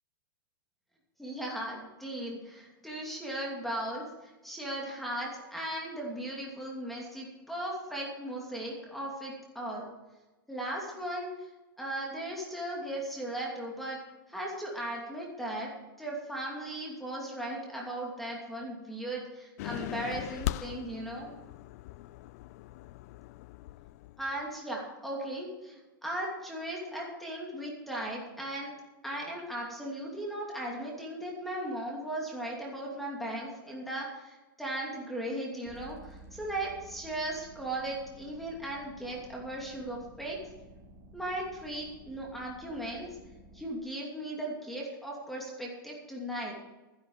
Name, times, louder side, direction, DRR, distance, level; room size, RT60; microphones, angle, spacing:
voice 1, 1.2-9.9 10.5-11.5 11.8-14.0 14.3-15.7 16.0-21.3 24.2-28.7 29.0-40.4 41.1-43.1 43.5-46.5, right 1 dB, ahead, -2 dB, 2.7 m, -37 dB
sound 1, 19.6-24.4, left 16 dB, 45° left, 0.3 m, -40 dB
sound 2, 35.6-43.7, right 1 dB, 25° right, 3.7 m, -53 dB
12.0 x 11.0 x 5.6 m, 1.1 s
supercardioid pair, 150°, 12 cm